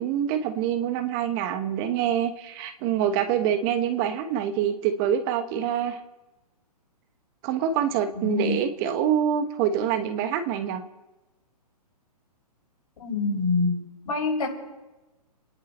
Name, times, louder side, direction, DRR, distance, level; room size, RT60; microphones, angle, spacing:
voice 1, 0.0-6.0 7.4-10.8, right 9 dB, 35° right, 8 dB, 1.3 m, -25 dB
voice 2, 8.1-8.6 13.0-13.7 14.0-14.5, left 3 dB, 65° left, -1 dB, 6.3 m, -25 dB
28.5 x 10.5 x 4.3 m, 1.1 s
hypercardioid pair, 130°, 20 cm